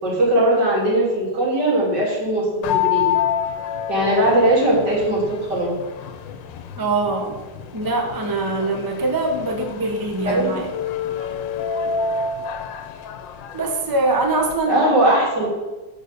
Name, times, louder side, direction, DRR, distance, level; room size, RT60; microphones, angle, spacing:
voice 1, 0.0-3.1 3.9-5.7 10.2-10.6 11.2-11.3 14.7-15.5, right 1 dB, 65° right, -4 dB, 3.3 m, -19 dB
sound 1, 2.6-14.6, left 8 dB, 90° left, 1.4 m, -28 dB
voice 2, 6.7-7.4 7.7-10.7 13.5-15.0, right 2 dB, 20° right, 2 dB, 0.7 m, -23 dB
7.0 x 5.4 x 6.7 m, 1.2 s
omnidirectional pair, 2.0 m